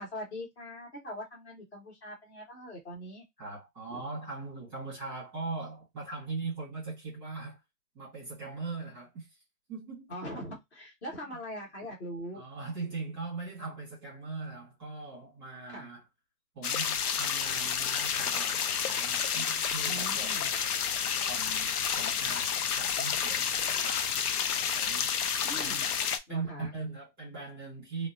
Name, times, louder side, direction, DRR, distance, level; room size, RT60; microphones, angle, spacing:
voice 1, 0.0-3.2 3.9-4.0 10.1-12.4 15.7-15.9 19.9-20.5 25.4-25.9 26.3-26.7, equal, 45° left, 1.5 m, -42 dB
voice 2, 3.4-7.6 7.9-9.3 9.7-10.1 11.2-11.4 12.3-16.0 16.5-24.2 24.5-25.1 25.5-25.9 26.3-28.1, right 3 dB, 5° right, 1.1 m, -40 dB
sound 1, 16.6-26.2, left 7 dB, 70° left, 0.5 m, -30 dB
2.8 x 2.1 x 2.5 m
hypercardioid pair, 175°, 47 cm